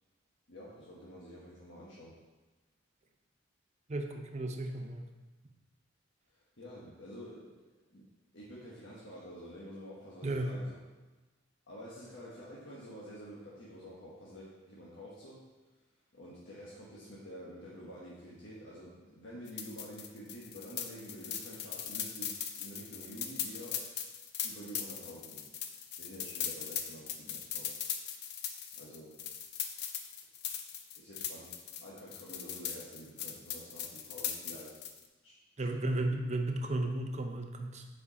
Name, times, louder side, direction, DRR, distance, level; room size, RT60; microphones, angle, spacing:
voice 1, 0.5-2.2 6.3-7.5 7.9-8.0 8.3-10.7 11.7-15.4 16.1-23.8 24.4-25.4 26.0-27.7 28.8-29.1 31.0-34.8 35.2-35.3 35.8-36.0, equal, 80° left, -7 dB, 1.4 m, -48 dB
voice 2, 3.9-5.0 10.2-10.5 35.6-37.9, right 2 dB, 40° right, 4 dB, 0.7 m, -34 dB
sound 1, 19.5-35.0, left 8 dB, 60° left, 0.6 m, -39 dB
7.3 x 4.9 x 4.2 m, 1.2 s
head